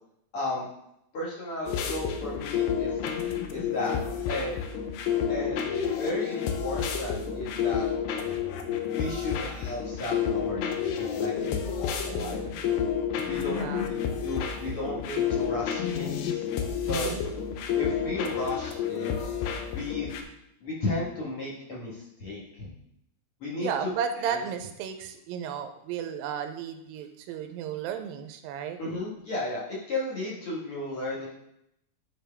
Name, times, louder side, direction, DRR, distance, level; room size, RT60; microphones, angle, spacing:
voice 1, 0.3-0.7 1.1-2.9 3.5-4.0 4.3-4.6 5.3-7.9 8.9-12.7 13.3-16.4 16.9-17.2 17.8-19.3 19.7-20.1 20.6-22.7 23.4-23.9 24.2-24.4 28.8-31.3, left 2 dB, 50° left, -6 dB, 1.9 m, -34 dB
sound 1, 1.7-20.2, left 8 dB, 80° left, 2.5 m, -30 dB
voice 2, 13.4-13.9 16.9-17.2 23.6-28.8, right 8 dB, 90° right, 7 dB, 2.4 m, -34 dB
10.0 x 4.6 x 3.4 m, 0.79 s
omnidirectional pair, 4.1 m